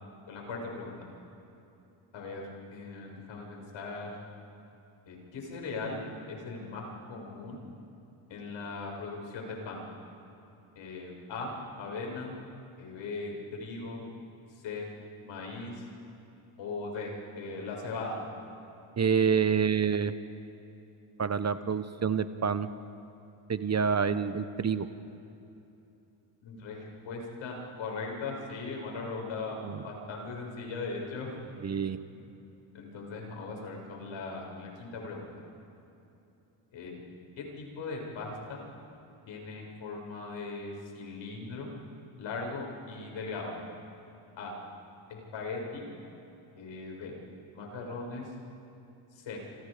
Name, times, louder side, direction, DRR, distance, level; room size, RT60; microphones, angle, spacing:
voice 1, 0.3-1.1 2.1-2.4 2.7-4.1 5.1-7.6 8.3-9.8 10.8-12.3 12.8-14.0 14.5-14.9 15.2-15.9 16.6-18.2 26.4-31.3 32.1-32.3 32.7-35.3 36.7-37.0 37.4-38.6 39.3-41.7 42.2-43.6 44.4-44.5 45.1-45.9 46.6-47.1 47.5-48.3 49.1-49.4, left 3 dB, 70° left, 0 dB, 6.9 m, -39 dB
voice 2, 19.0-20.1 21.2-22.7 23.5-24.9 29.6-29.8 31.6-32.0, right 6 dB, 35° right, 11 dB, 1.1 m, -27 dB
29.0 x 26.5 x 5.2 m, 2.8 s
cardioid pair, 85°, 48 cm